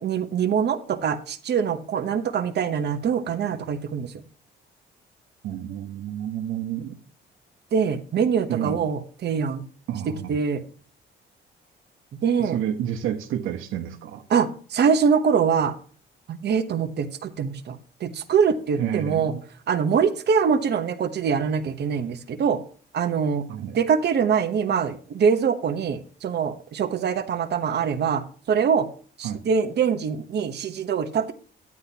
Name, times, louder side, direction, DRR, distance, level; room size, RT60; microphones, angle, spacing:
voice 1, 0.0-4.1 7.7-9.6 10.3-10.6 12.2-12.6 14.3-15.7 16.3-19.3 19.7-22.6 22.9-23.4 23.7-28.9 29.2-31.3, right 6 dB, 55° right, 1.0 m, -24 dB
voice 2, 5.4-6.9 8.5-8.8 9.9-10.4 12.4-14.2 18.8-19.4 23.5-23.8 29.2-29.4, right 10 dB, 90° right, 1.1 m, -30 dB
12.0 x 9.6 x 2.9 m
cardioid pair, 90°, 20 cm